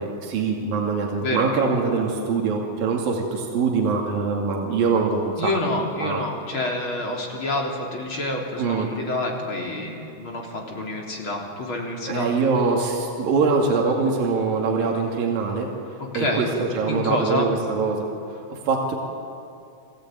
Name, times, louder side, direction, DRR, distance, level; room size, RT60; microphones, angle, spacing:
voice 1, 0.0-5.5 6.0-6.3 8.6-8.9 12.1-15.7 16.2-18.1 18.3-18.9, right 4 dB, 70° right, -1 dB, 4.1 m, -23 dB
voice 2, 5.4-12.3 16.0-16.5 16.9-17.5, left 2 dB, 35° left, 0 dB, 3.8 m, -28 dB
29.0 x 19.0 x 9.1 m, 2.5 s
omnidirectional pair, 4.2 m